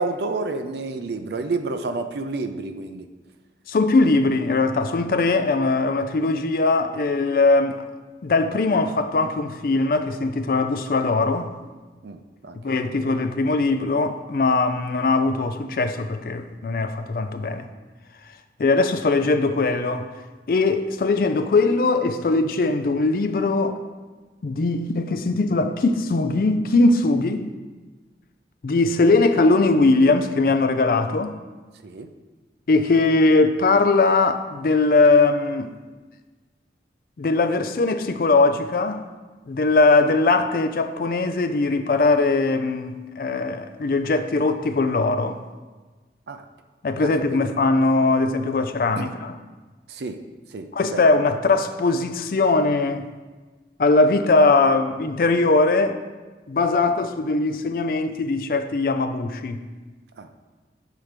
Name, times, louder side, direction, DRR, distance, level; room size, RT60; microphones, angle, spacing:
voice 1, 0.0-3.1 12.0-13.0 31.8-32.1 46.3-46.4 47.0-47.4 48.3-48.5 49.0-49.1 49.9-50.2 50.5-51.0 60.2-60.3, right 3 dB, 70° right, 0.5 m, -30 dB
voice 2, 3.7-7.8 8.2-11.5 12.6-17.7 18.6-20.1 20.5-23.8 24.4-27.5 28.6-31.4 32.7-35.7 37.2-39.0 39.5-45.4 46.8-49.4 50.7-53.0 53.8-56.0 56.5-59.6, left 3 dB, 50° left, 0.4 m, -20 dB
5.7 x 4.6 x 5.0 m
head